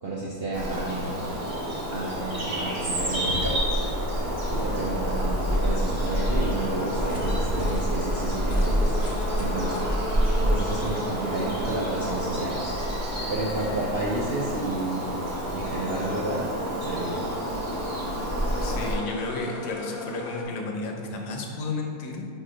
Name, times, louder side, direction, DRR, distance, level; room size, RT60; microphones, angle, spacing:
voice 1, 0.0-1.3 1.9-3.6 4.5-8.9 9.4-9.8 10.4-12.7 13.3-15.1 15.5-16.5 16.8-17.2, right 2 dB, 60° right, -5 dB, 0.6 m, -31 dB
Bird vocalization bird call bird song, 0.5-18.9, equal, 25° right, 0.8 m, -28 dB
sound 1, 4.1-20.4, left 1 dB, 50° left, 0.8 m, -38 dB
voice 2, 18.6-22.3, left 3 dB, 80° left, 1 dB, 1.3 m, -33 dB
4.7 x 4.3 x 5.0 m, 2.4 s
omnidirectional pair, 1.7 m